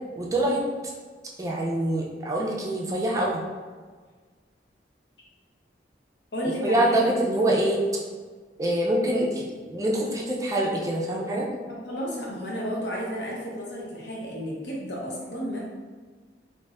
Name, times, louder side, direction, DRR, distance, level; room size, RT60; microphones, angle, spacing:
voice 1, 0.2-0.6 1.4-3.4 6.6-7.8 8.6-11.5, right 1 dB, 20° right, -2 dB, 0.3 m, -25 dB
voice 2, 6.3-7.1 11.7-15.7, equal, 75° left, -4 dB, 0.8 m, -32 dB
2.5 x 2.4 x 3.1 m, 1.5 s
head